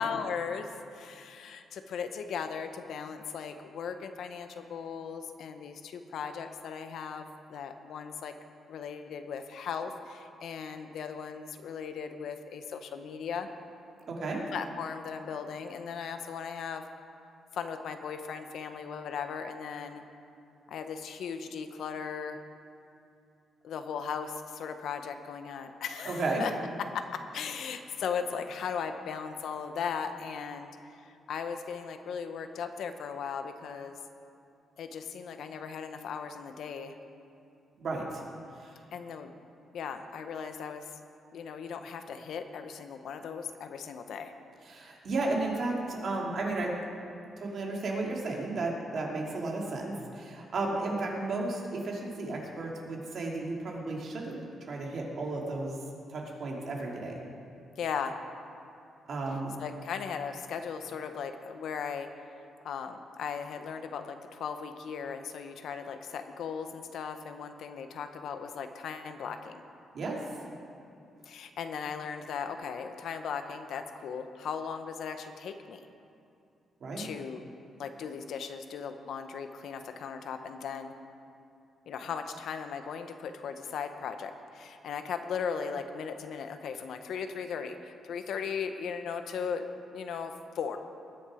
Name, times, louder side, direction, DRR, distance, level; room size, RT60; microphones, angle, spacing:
voice 1, 0.0-8.3 8.7-13.5 14.5-16.8 17.5-20.0 20.7-22.4 23.6-26.5 26.9-30.7 31.0-34.0 34.8-37.0 38.9-39.4 39.7-40.9 41.3-44.3 57.8-58.2 59.6-62.1 62.6-69.6 71.3-75.8 77.0-77.4 77.8-80.9 81.9-90.8, left 6 dB, 70° left, 8 dB, 0.8 m, -37 dB
voice 2, 14.1-14.4 26.1-26.4 37.8-38.2 38.6-38.7 44.7-46.7 47.4-54.4 54.7-55.7 56.1-57.1 59.1-59.5 69.9-70.2 76.8-77.1, right 2 dB, 55° right, -1 dB, 2.3 m, -33 dB
20.0 x 7.2 x 4.9 m, 2.6 s
cardioid pair, 135°, 0 cm